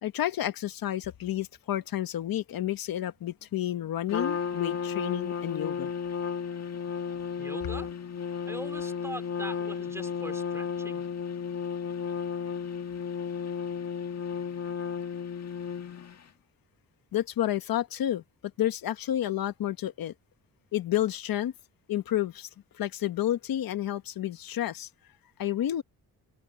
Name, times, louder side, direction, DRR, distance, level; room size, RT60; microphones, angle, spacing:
voice 1, 0.0-5.9 17.1-18.2 18.6-20.1 20.7-21.5 21.9-22.5 22.7-24.9 25.4-25.8, left 12 dB, 75° left, 1.4 m, -30 dB
Trumpet, 4.1-16.2, left 6 dB, 50° left, 1.8 m, -33 dB
voice 2, 7.4-7.9 8.5-11.0, right 1 dB, 10° right, 3.7 m, -42 dB
cardioid pair, 100°, 35 cm